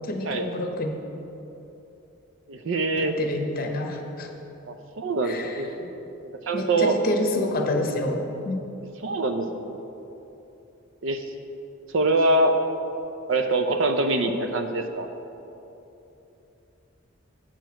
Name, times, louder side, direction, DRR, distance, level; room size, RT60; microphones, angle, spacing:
voice 1, 0.1-0.9 3.0-4.3 5.2-5.9 6.5-8.6, left 2 dB, 45° left, 4 dB, 0.8 m, -28 dB
voice 2, 2.5-3.1 4.7-5.7 6.2-7.0 9.0-9.7 11.0-11.2 11.9-12.5 13.3-15.1, right 2 dB, 65° right, 6 dB, 0.5 m, -24 dB
7.7 x 6.2 x 4.7 m, 3.0 s
head